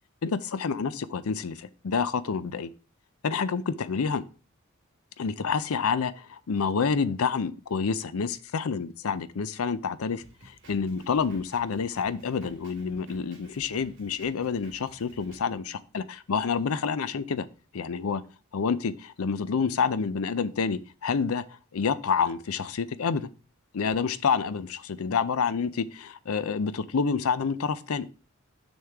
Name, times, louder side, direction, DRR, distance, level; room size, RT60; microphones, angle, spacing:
voice 1, 0.2-2.7 3.2-4.2 5.2-17.5 17.7-18.2 18.5-21.4 21.7-23.3 23.7-28.0, left 5 dB, 90° left, 0.5 m, -28 dB
Drum kit, 10.2-15.5, right 1 dB, 55° right, 1.9 m, -54 dB
6.5 x 6.2 x 3.5 m
head